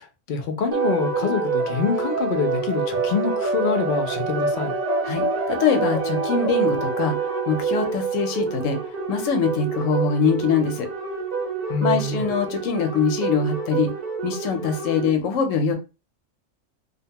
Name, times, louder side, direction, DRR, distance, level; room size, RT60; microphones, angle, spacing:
voice 1, 0.0-4.7 11.7-12.2, left 5 dB, 60° left, 0.6 m, -26 dB
sound 1, 0.7-15.1, right 4 dB, 45° right, 0.5 m, -26 dB
voice 2, 5.0-7.2 7.5-8.8 9.1-10.9 11.8-13.9 14.2-15.7, left 5 dB, 80° left, 1.0 m, -23 dB
2.7 x 2.1 x 2.7 m
omnidirectional pair, 1.3 m